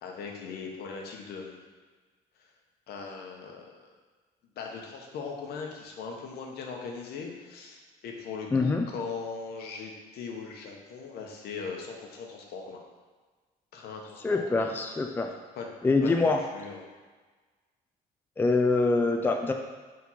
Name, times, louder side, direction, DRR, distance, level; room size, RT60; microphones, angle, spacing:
voice 1, 0.0-1.6 2.4-2.5 2.9-3.9 4.6-12.8 13.7-14.7 15.5-15.7 16.0-16.8, left 5 dB, 70° left, 1 dB, 1.1 m, -39 dB
voice 2, 8.5-8.8 14.2-15.3 15.8-16.4 18.4-19.5, left 3 dB, 10° left, 4 dB, 0.4 m, -24 dB
4.8 x 3.7 x 5.6 m, 1.4 s
cardioid pair, 110°, 17 cm